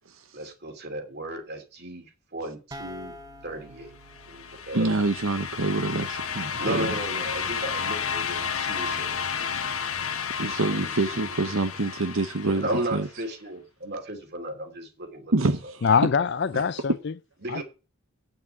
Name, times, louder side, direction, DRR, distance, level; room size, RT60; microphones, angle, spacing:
voice 1, 0.3-3.2 3.4-3.9 4.3-4.9 6.6-9.7 10.7-11.2 12.5-15.3 15.6-15.7 17.4-17.6, right 1 dB, 50° right, 2.8 m, -35 dB
sound 1, 2.7-6.4, equal, 15° right, 1.1 m, -47 dB
sound 2, 4.1-13.0, left 6 dB, 80° left, 1.2 m, -32 dB
voice 2, 4.7-6.9 10.4-13.1 15.3-15.8 16.5-16.6, right 3 dB, 70° right, 1.0 m, -26 dB
voice 3, 15.8-17.1 17.5-17.6, left 6 dB, 50° left, 0.5 m, -23 dB
8.8 x 6.9 x 8.4 m
head